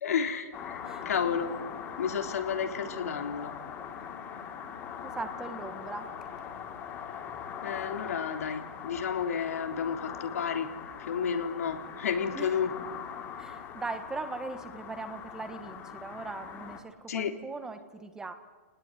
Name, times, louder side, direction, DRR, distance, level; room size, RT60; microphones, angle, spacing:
voice 1, 0.0-1.6 2.0-3.5 7.6-10.7 11.0-12.8 17.1-17.4, left 7 dB, 80° left, 6 dB, 3.4 m, -31 dB
sound 1, 0.5-16.8, left 8 dB, 25° left, 3.1 m, -41 dB
voice 2, 5.0-6.1 12.3-12.6 13.4-18.3, right 3 dB, 10° right, 9 dB, 1.6 m, -40 dB
29.0 x 19.5 x 9.9 m, 1.4 s
hypercardioid pair, 155°, 8 cm